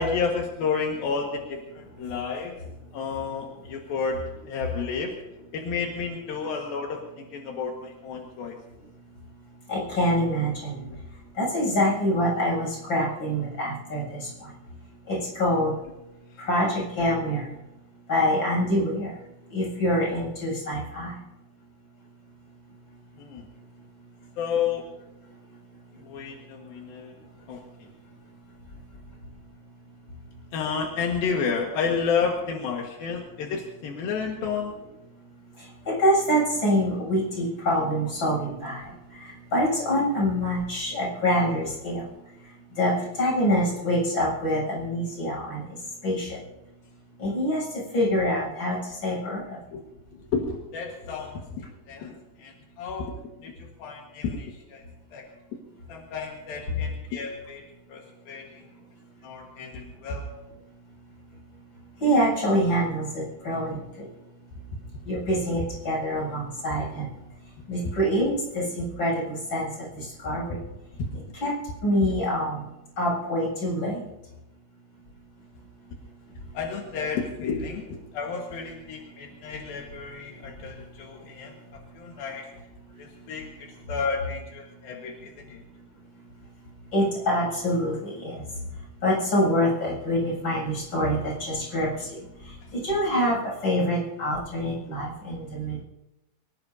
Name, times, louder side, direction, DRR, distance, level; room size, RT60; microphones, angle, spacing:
voice 1, 0.0-2.6 2.9-4.2 4.4-5.1 5.5-8.6 23.2-23.5 24.4-24.9 26.0-27.1 27.5-27.6 30.5-34.7 49.7-49.8 50.1-54.8 55.1-55.2 55.9-57.6 57.9-58.6 59.2-60.3 71.0-71.1 76.5-82.5 83.0-85.6, left 5 dB, 80° left, 0 dB, 3.4 m, -31 dB
voice 2, 9.7-10.8 11.4-14.3 15.1-15.7 16.4-17.4 18.1-19.1 19.5-21.1 35.9-38.8 39.5-42.0 42.8-42.9 43.2-45.6 46.0-46.4 47.2-47.6 47.9-48.8 49.0-49.6 62.0-63.8 65.1-67.1 67.7-69.7 70.0-70.6 71.4-71.5 71.8-72.6 73.0-74.0 86.9-88.3 89.0-91.9 92.7-95.8, equal, 30° left, -4 dB, 8.6 m, -25 dB
24.0 x 19.0 x 2.7 m, 0.94 s
omnidirectional pair, 4.1 m